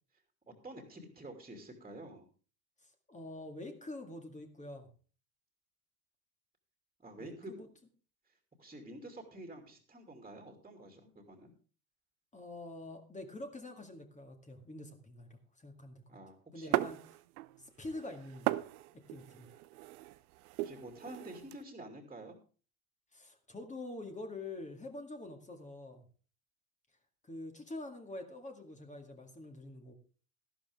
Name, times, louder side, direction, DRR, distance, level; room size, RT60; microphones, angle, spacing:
voice 1, 0.6-2.3 7.0-7.5 8.6-11.5 16.1-16.9 20.1-20.2 20.6-22.4, right 1 dB, 10° right, 4 dB, 2.6 m, -49 dB
voice 2, 2.8-4.9 7.2-7.7 12.3-16.0 16.5-17.0 17.6-18.6 18.9-19.5 23.1-26.0 27.2-29.9, left 2 dB, 15° left, 4 dB, 2.1 m, -46 dB
sound 1, 16.7-17.6 17.9-21.6, right 17 dB, 65° right, 0.7 m, -37 dB
13.0 x 12.0 x 3.6 m, 0.39 s
hypercardioid pair, 90°, 47 cm